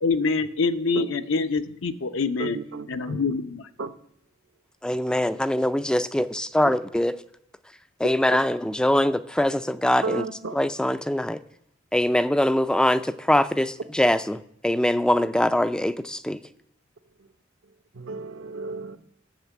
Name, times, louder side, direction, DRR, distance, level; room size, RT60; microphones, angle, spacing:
voice 1, 0.0-2.6 2.9-3.6, left 4 dB, 70° left, 0.7 m, -25 dB
voice 2, 2.4-3.2 3.8-4.0 8.3-8.4 10.0-10.6 17.9-19.0, right 3 dB, 70° right, 0.8 m, -33 dB
voice 3, 4.8-7.1 8.0-10.2 10.6-11.4 11.9-16.4, left 1 dB, 5° left, 0.4 m, -23 dB
10.0 x 6.6 x 8.2 m
head